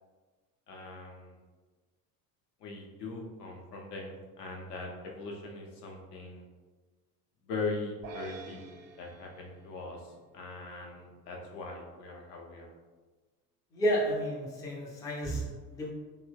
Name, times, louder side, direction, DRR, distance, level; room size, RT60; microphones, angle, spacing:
voice 1, 0.7-1.3 2.6-6.4 7.5-8.6 9.0-10.0 10.3-12.7, left 3 dB, 75° left, 0 dB, 0.7 m, -40 dB
sound 1, 8.0-10.5, right 4 dB, 50° right, 0.6 m, -48 dB
voice 2, 13.7-15.9, equal, 10° left, -3 dB, 0.3 m, -31 dB
2.8 x 2.0 x 3.4 m, 1.3 s
hypercardioid pair, 70°, 48 cm